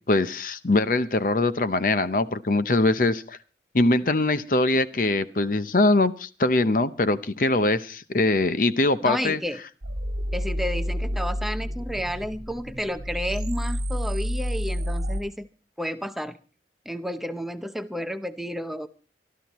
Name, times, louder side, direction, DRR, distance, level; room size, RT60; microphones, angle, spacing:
voice 1, 0.1-3.4 3.7-9.4, left 2 dB, 50° left, 13 dB, 0.7 m, -22 dB
voice 2, 9.0-9.6 10.3-15.5 15.8-16.4 16.9-18.9, equal, ahead, 8 dB, 0.7 m, -31 dB
sound 1, 9.8-15.2, equal, 75° right, 1.5 m, -29 dB
24.5 x 13.0 x 3.0 m, 0.35 s
head